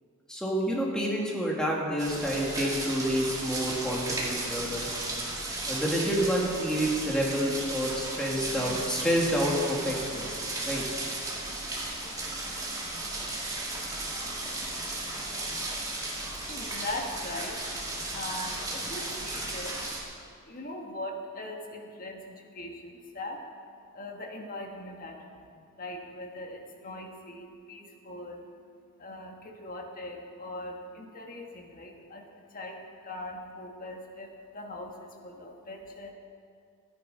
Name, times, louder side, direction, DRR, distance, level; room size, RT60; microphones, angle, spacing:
voice 1, 0.3-5.0 5.7-10.4 10.6-10.8, equal, 5° left, -3 dB, 2.0 m, -28 dB
sound 1, 2.0-20.0, right 2 dB, 15° right, 2.0 m, -35 dB
voice 2, 16.3-36.1, left 1 dB, 40° left, 1 dB, 1.5 m, -41 dB
13.5 x 9.7 x 5.4 m, 2.3 s
head